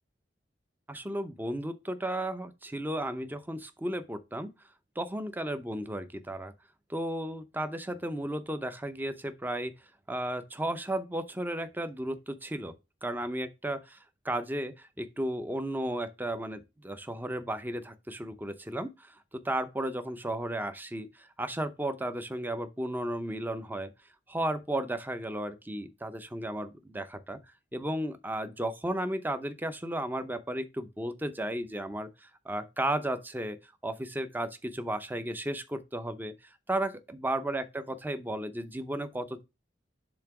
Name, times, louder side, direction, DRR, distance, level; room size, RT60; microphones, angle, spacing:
voice 1, 0.9-4.5 5.0-6.5 6.9-9.7 10.1-12.7 13.0-23.9 24.3-27.4 27.7-36.3 36.7-37.6 38.0-39.4, right 1 dB, 10° right, 0.6 m, -34 dB
7.2 x 2.9 x 5.8 m
head